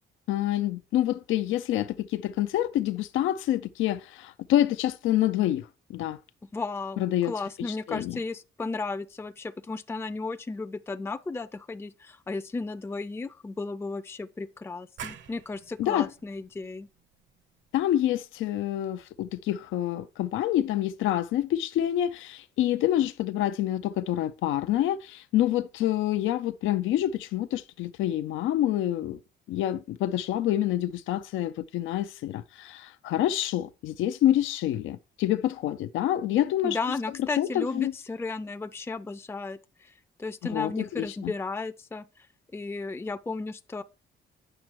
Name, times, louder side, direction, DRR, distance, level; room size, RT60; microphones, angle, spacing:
voice 1, 0.3-6.2 7.0-7.3 7.6-8.2 15.8-16.1 17.7-29.2 29.5-36.8 37.4-37.9 40.4-41.3, left 12 dB, 80° left, 0.5 m, -27 dB
voice 2, 6.5-16.9 36.6-39.9 40.2-42.3 42.5-43.8, left 3 dB, 10° left, 0.5 m, -34 dB
sound 1, 15.0-20.4, right 7 dB, 70° right, 1.1 m, -49 dB
8.8 x 6.0 x 4.5 m
cardioid pair, 90°, 20 cm